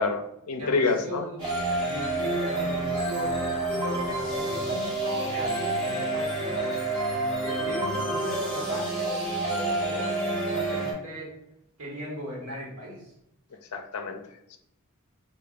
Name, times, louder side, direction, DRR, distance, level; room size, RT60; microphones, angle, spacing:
voice 1, 0.0-1.2 13.7-14.2 14.5-14.6, left 3 dB, 85° left, 6 dB, 0.5 m, -27 dB
voice 2, 0.6-1.4 1.8-6.8 7.4-10.2 10.5-11.3 11.8-13.1, equal, 90° right, -3 dB, 1.4 m, -37 dB
sound 1, 1.4-10.9, right 2 dB, 20° right, 1.2 m, -28 dB
4.9 x 2.5 x 2.4 m, 0.80 s
head